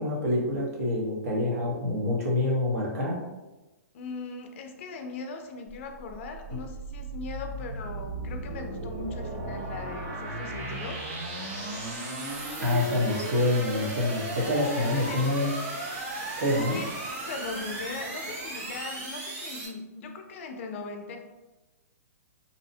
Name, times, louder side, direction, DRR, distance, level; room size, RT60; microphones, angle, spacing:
voice 1, 0.0-3.2 12.6-15.5 16.4-16.8, left 2 dB, 70° right, -3 dB, 1.0 m, -26 dB
voice 2, 3.9-11.0 14.7-15.3 16.3-16.9 17.3-21.2, left 3 dB, 50° left, 4 dB, 0.4 m, -39 dB
sound 1, 5.7-19.7, right 2 dB, 30° right, 0.6 m, -36 dB
2.8 x 2.0 x 2.6 m, 1.1 s
hypercardioid pair, 150°, 9 cm